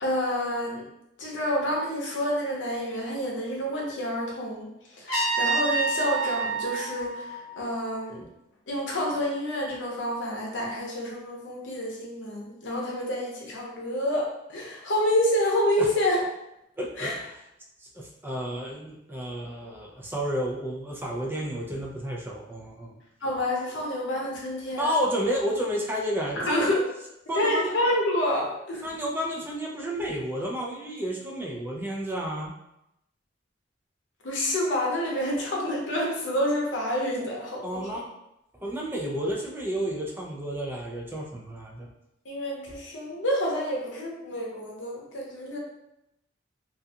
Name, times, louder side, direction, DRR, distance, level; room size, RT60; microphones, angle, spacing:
voice 1, 0.0-0.8 1.2-8.2 8.7-16.2 17.0-17.1 23.2-24.9 26.3-26.8 27.3-28.8 34.2-38.0 42.3-45.6, left 1 dB, 80° left, -2 dB, 0.7 m, -28 dB
Trumpet, 5.1-8.0, right 3 dB, 50° left, 1.0 m, -28 dB
voice 2, 16.8-17.3 17.8-22.9 24.8-26.7 27.3-27.7 28.8-32.5 37.6-38.0 38.6-41.9, equal, 10° right, -2 dB, 0.4 m, -31 dB
2.4 x 2.3 x 2.6 m, 0.84 s
head